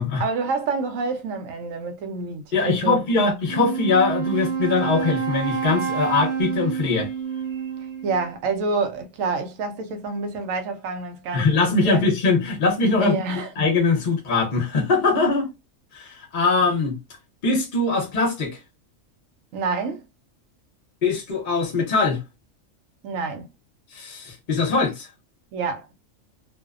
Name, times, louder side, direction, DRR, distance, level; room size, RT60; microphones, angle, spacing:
voice 1, 0.2-3.1 8.0-12.1 13.0-13.5 19.5-20.0 23.0-23.5 25.5-25.9, right 4 dB, 80° right, 1.0 m, -27 dB
voice 2, 2.5-7.1 11.3-13.1 13.6-15.5 15.9-17.0 17.4-18.5 21.0-22.2 23.9-25.1, left 3 dB, 45° left, 0.8 m, -21 dB
Wind instrument woodwind instrument, 3.4-8.3, right 7 dB, 15° left, 0.5 m, -28 dB
2.6 x 2.1 x 2.3 m
omnidirectional pair, 1.4 m